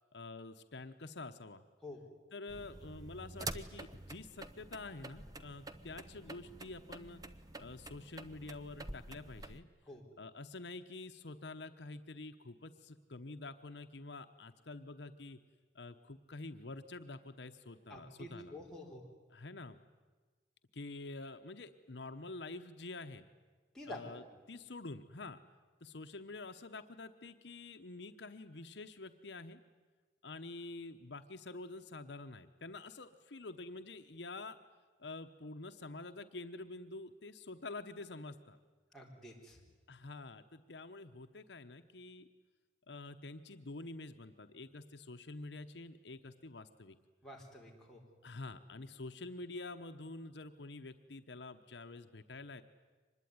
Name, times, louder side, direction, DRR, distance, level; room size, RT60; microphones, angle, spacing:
voice 1, 0.1-1.6 2.3-7.2 7.6-9.7 10.2-15.4 15.7-18.6 19.3-19.8 20.7-23.3 23.8-24.2 24.5-25.4 25.8-29.6 30.2-34.6 35.0-38.6 39.9-42.3 42.9-47.0 48.2-52.6, left 3 dB, 70° left, 7 dB, 1.0 m, -47 dB
sound 1, 2.5-9.6, right 2 dB, 20° right, 0.9 m, -48 dB
voice 2, 17.9-19.0 23.7-24.0 38.9-39.6 47.2-48.0, left 1 dB, 5° left, -3 dB, 4.0 m, -49 dB
24.5 x 20.5 x 9.6 m, 1.4 s
head